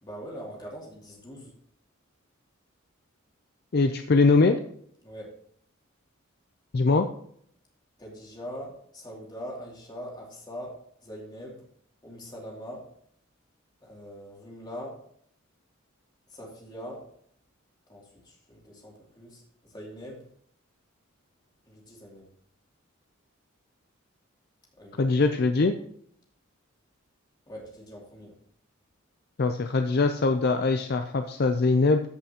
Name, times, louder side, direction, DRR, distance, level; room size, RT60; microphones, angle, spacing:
voice 1, 0.0-1.5 5.0-5.3 8.0-11.6 12.0-12.9 13.8-15.0 16.3-17.0 17.9-20.3 21.7-22.3 24.8-25.4 27.5-28.3, equal, 20° left, -3 dB, 2.6 m, -42 dB
voice 2, 3.7-4.6 6.7-7.1 25.0-25.7 29.4-32.0, left 3 dB, 50° left, 7 dB, 0.5 m, -22 dB
14.5 x 5.8 x 2.9 m, 0.66 s
head